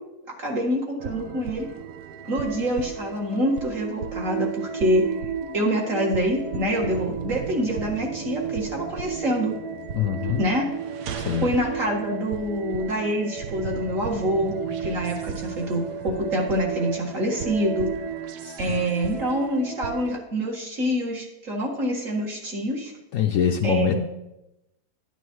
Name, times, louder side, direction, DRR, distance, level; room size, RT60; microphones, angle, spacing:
voice 1, 0.4-1.7 2.2-5.0 5.5-9.5 10.4-10.7 11.4-17.9 18.6-22.9 23.6-24.0, equal, 55° right, -2 dB, 2.2 m, -26 dB
sound 1, 1.0-20.2, right 7 dB, 80° right, 1.3 m, -33 dB
voice 2, 9.9-10.4 11.2-11.5 18.4-18.8 23.1-24.0, left 9 dB, 65° left, 5 dB, 0.9 m, -24 dB
11.0 x 10.0 x 3.1 m, 0.93 s
omnidirectional pair, 1.7 m